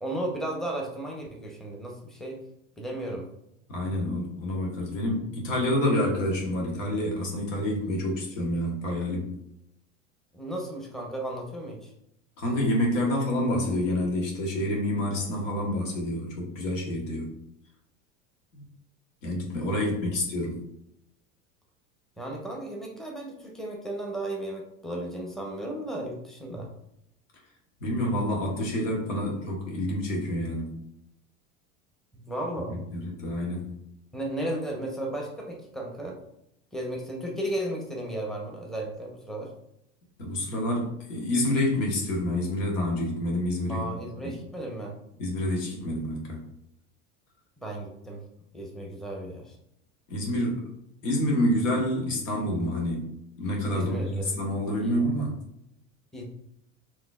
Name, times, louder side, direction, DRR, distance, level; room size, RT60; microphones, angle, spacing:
voice 1, 0.0-2.4 2.8-3.3 10.3-11.9 22.2-26.7 32.1-32.8 34.1-36.2 36.7-39.5 43.7-44.9 47.6-48.2 48.5-49.5 53.7-54.3 54.8-55.0 56.1-56.2, right 1 dB, ahead, 0 dB, 0.8 m, -34 dB
voice 2, 3.7-9.3 12.4-17.3 18.5-18.6 19.2-20.6 27.8-30.7 32.7-33.8 40.2-44.3 45.2-46.4 50.1-50.7 51.0-53.1 53.4-55.4, left 1 dB, 80° left, -1 dB, 1.2 m, -28 dB
3.8 x 3.0 x 2.4 m, 0.79 s
hypercardioid pair, 85°, 39 cm